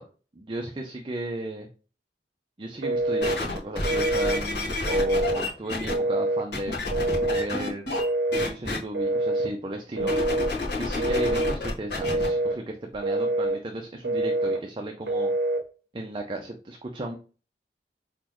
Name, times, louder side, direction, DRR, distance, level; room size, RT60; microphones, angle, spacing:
voice 1, 0.4-1.7 2.6-6.8 7.3-7.9 8.4-10.1 10.8-15.3 15.9-17.2, right 1 dB, 30° right, 2 dB, 0.5 m, -34 dB
Telephone, 2.8-3.4 3.8-4.4 4.9-5.4 5.9-6.5 6.9-7.5 7.9-8.5 8.9-9.5 10.0-10.5 11.0-11.6 12.0-12.6 13.0-13.6 14.0-14.6 15.0-15.6, right 2 dB, 65° right, 0.7 m, -26 dB
sound 1, 3.2-5.9 6.5-8.0 8.3-8.8 10.0-12.3 12.9-13.0, left 2 dB, 70° left, 2.3 m, -30 dB
4.2 x 4.1 x 3.0 m, 0.36 s
head